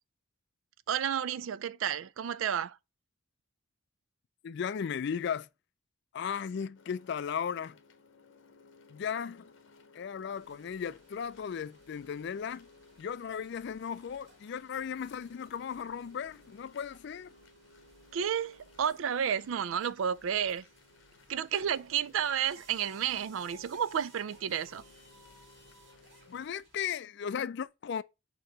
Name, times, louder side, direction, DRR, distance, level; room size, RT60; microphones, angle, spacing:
voice 1, 0.9-2.8 18.1-20.7 21.3-24.8, right 8 dB, 85° right, 0.4 m, -31 dB
voice 2, 4.4-5.5 6.1-7.8 8.9-9.5 9.9-12.7 13.0-17.3 26.3-28.0, left 7 dB, 60° left, 0.3 m, -36 dB
sound 1, 6.7-26.5, left 3 dB, 75° left, 0.8 m, -60 dB
sound 2, 10.3-26.8, right 1 dB, 55° right, 3.5 m, -61 dB
6.6 x 2.9 x 5.1 m
head